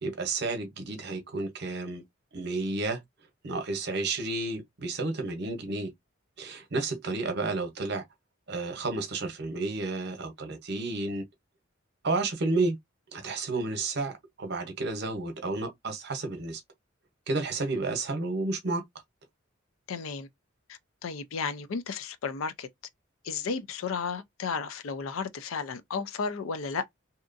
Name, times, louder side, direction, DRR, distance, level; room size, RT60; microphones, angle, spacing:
voice 1, 0.0-2.0 2.3-3.0 3.4-5.9 6.4-8.0 8.5-11.2 12.0-12.8 13.1-16.6 17.3-18.8, right 3 dB, 55° right, 0.8 m, -31 dB
voice 2, 19.9-20.3 20.7-22.7 23.2-27.0, left 5 dB, 85° left, 0.4 m, -33 dB
2.8 x 2.3 x 2.5 m
head